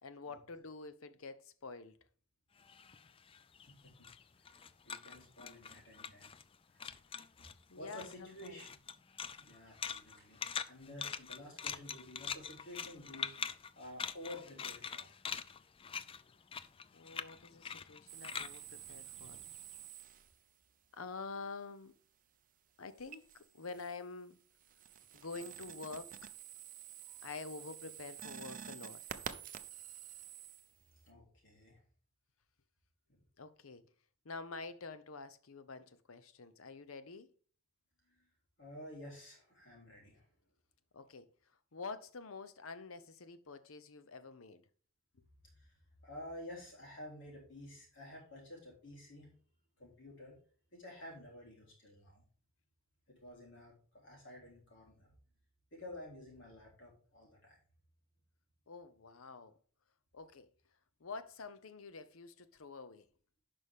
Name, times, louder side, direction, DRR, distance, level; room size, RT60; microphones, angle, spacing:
voice 1, 0.0-2.0 7.7-8.7 16.9-19.4 20.9-21.9 22.8-24.4 25.1-26.1 27.2-29.0 33.4-33.8 34.2-37.3 40.9-41.3 41.7-44.6 58.7-59.6 60.1-60.5 61.0-63.1, left 4 dB, 85° left, 0.8 m, -47 dB
sound 1, 2.6-6.5 6.8-7.6 7.9-19.7, left 7 dB, 25° left, 0.4 m, -44 dB
voice 2, 3.7-4.1 4.4-6.3 6.7-6.9 7.8-8.7 9.4-13.3 13.8-15.1 27.0-27.2 31.1-31.8 38.2-38.3 38.6-40.3 45.6-45.8 46.0-49.3 49.8-50.4 50.7-52.3 53.1-55.1 55.7-57.6, left 1 dB, 60° left, 3.6 m, -51 dB
sound 2, 18.1-20.6 23.0-24.0 24.4-31.1, right 9 dB, 40° right, 0.6 m, -50 dB
10.5 x 5.4 x 3.6 m
head